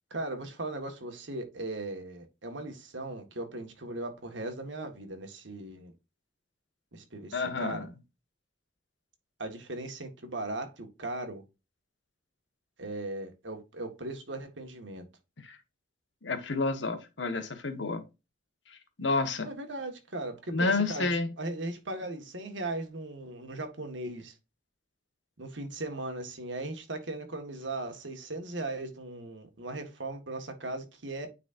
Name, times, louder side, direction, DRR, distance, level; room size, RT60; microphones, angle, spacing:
voice 1, 0.1-5.9 6.9-7.9 9.4-11.4 12.8-15.0 19.4-21.1 21.4-24.3 25.4-31.3, right 2 dB, 85° right, 1.7 m, -38 dB
voice 2, 7.3-7.9 15.4-15.6 16.2-18.0 19.0-19.5 20.5-21.3, left 3 dB, 80° left, 1.5 m, -29 dB
9.4 x 4.2 x 2.6 m
head